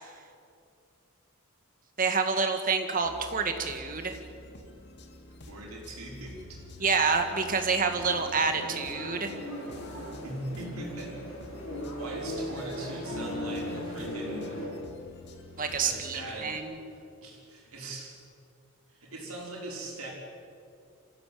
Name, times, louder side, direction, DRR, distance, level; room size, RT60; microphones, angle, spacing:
voice 1, 2.0-4.2 6.8-9.3 15.6-16.8, right 5 dB, 40° right, 6 dB, 1.9 m, -28 dB
sound 1, 3.0-16.6, left 2 dB, 50° left, 2.1 m, -49 dB
voice 2, 5.5-6.6 10.2-11.2 12.0-14.7 15.7-18.2 18.9-20.1, right 1 dB, 80° right, -2 dB, 5.3 m, -41 dB
sound 2, 8.0-14.7, equal, 70° left, 7.4 m, -38 dB
26.0 x 15.5 x 8.7 m, 2.5 s
head